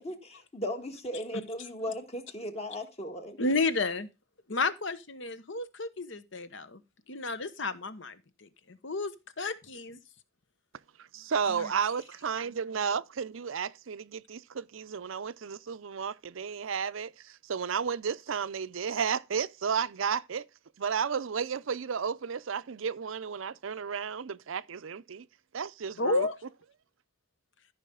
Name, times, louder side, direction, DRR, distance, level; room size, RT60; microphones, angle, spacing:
voice 1, 0.0-3.4, equal, 30° left, 1.6 m, -37 dB
voice 2, 3.4-4.1 4.5-6.8 7.1-8.1 8.7-9.1 9.4-10.0 26.0-26.3, left 3 dB, 60° left, 1.1 m, -31 dB
voice 3, 11.1-20.4 20.8-25.3 25.5-26.3, right 6 dB, 70° right, 0.5 m, -33 dB
14.0 x 5.7 x 3.8 m
head